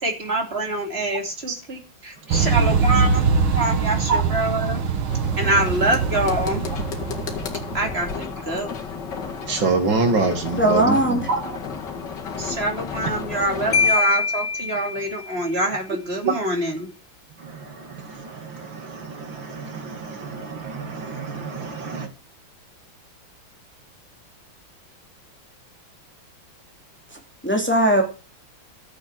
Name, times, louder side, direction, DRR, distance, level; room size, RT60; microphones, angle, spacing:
voice 1, 0.0-4.8 5.4-6.6 7.7-8.7 12.4-16.9, right 1 dB, 30° right, 3.5 m, -25 dB
sound 1, 2.3-8.1, right 5 dB, 90° right, 2.3 m, -23 dB
sound 2, 5.1-13.9, left 5 dB, 60° left, 2.6 m, -32 dB
voice 2, 9.4-11.6 16.2-16.4 17.4-22.1, right 4 dB, 70° right, 2.9 m, -26 dB
voice 3, 10.6-11.2 27.4-28.0, right 1 dB, 5° left, 3.1 m, -18 dB
Marimba xylophone, 13.7-15.5, left 4 dB, 85° left, 2.0 m, -23 dB
13.0 x 8.3 x 7.6 m
omnidirectional pair, 2.2 m